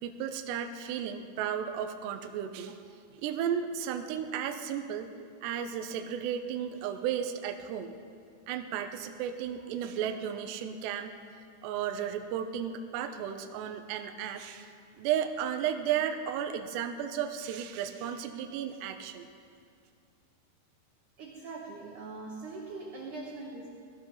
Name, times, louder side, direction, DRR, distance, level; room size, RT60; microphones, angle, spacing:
voice 1, 0.0-2.8 3.1-5.1 5.4-8.0 8.5-11.1 11.6-14.7 15.0-19.3, right 9 dB, 75° right, 6 dB, 2.7 m, -34 dB
voice 2, 21.2-23.7, right 3 dB, 60° right, -2 dB, 2.1 m, -42 dB
18.5 x 13.5 x 5.6 m, 2.4 s
omnidirectional pair, 5.3 m